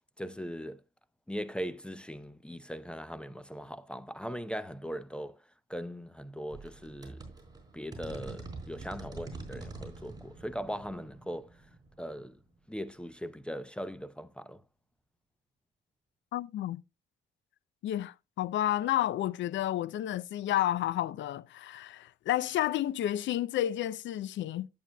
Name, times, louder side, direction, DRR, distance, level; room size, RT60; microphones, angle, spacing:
voice 1, 0.2-0.8 1.3-5.4 5.7-7.2 7.7-11.5 12.0-12.3 12.7-14.6, equal, 5° left, 0.6 m, -39 dB
sound 1, 6.5-13.0, right 3 dB, 20° right, 4.2 m, -46 dB
voice 2, 16.3-16.8 17.8-24.7, left 12 dB, 70° left, 0.5 m, -31 dB
11.0 x 8.7 x 2.2 m
cardioid pair, 90°, 20 cm